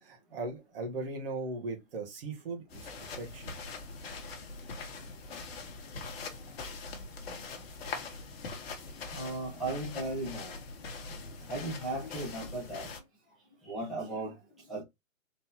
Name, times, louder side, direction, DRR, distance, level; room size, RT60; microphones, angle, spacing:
voice 1, 0.0-2.9 3.2-3.5, right 3 dB, 45° right, 1.9 m, -38 dB
sound 1, 2.7-13.0, left 4 dB, 50° left, 1.4 m, -42 dB
voice 2, 9.1-10.5 11.5-12.9 13.6-14.3 14.7-14.8, right 2 dB, ahead, 1.0 m, -36 dB
4.1 x 4.0 x 2.9 m
hypercardioid pair, 170°, 40 cm